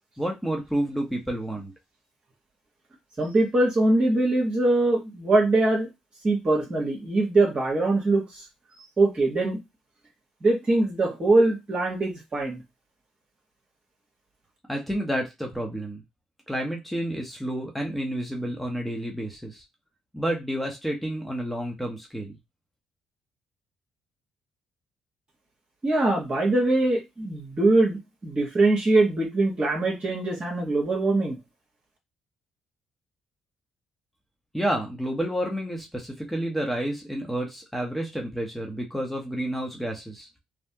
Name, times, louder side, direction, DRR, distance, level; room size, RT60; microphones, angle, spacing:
voice 1, 0.2-1.7 14.7-16.0 16.5-19.6 20.1-22.4 34.5-40.3, right 1 dB, 5° left, 1 dB, 1.0 m, -30 dB
voice 2, 3.2-5.9 6.2-8.4 9.0-9.6 10.4-12.6 25.8-31.4, right 2 dB, 40° right, -1 dB, 1.5 m, -22 dB
3.2 x 2.2 x 2.8 m, 0.22 s
hypercardioid pair, 50°, 3 cm